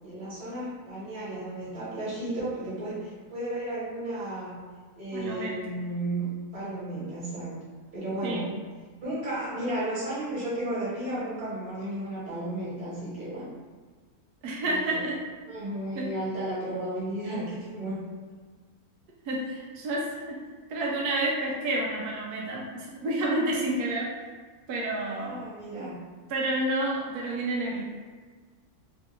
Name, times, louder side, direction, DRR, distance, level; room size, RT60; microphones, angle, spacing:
voice 1, 0.0-4.6 5.0-7.5 7.9-8.5 9.0-13.4 14.6-15.0 15.5-18.1 25.0-26.0, right 1 dB, 45° right, -9 dB, 1.5 m, -33 dB
voice 2, 5.1-5.5 8.2-8.5 14.4-15.2 16.0-16.1 19.3-20.4 20.7-24.1 24.7-25.4 25.8-25.9 26.3-27.8, right 1 dB, 90° right, -3 dB, 1.1 m, -29 dB
3.5 x 2.4 x 2.7 m, 1.5 s
omnidirectional pair, 1.6 m